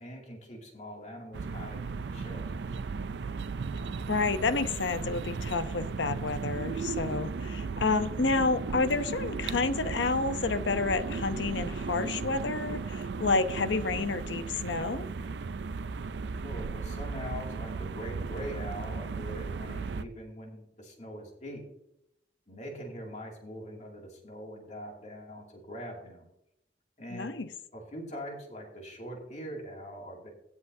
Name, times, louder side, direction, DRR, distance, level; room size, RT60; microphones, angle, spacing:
voice 1, 0.0-2.4 16.4-21.6 22.5-26.3 27.0-27.4 27.7-30.3, equal, 40° left, 2.4 m, -42 dB
sound 1, 1.3-20.0, right 4 dB, 70° right, 0.4 m, -36 dB
voice 2, 4.1-15.1 27.1-27.5, left 3 dB, 85° left, 0.8 m, -30 dB
16.5 x 8.0 x 2.7 m
head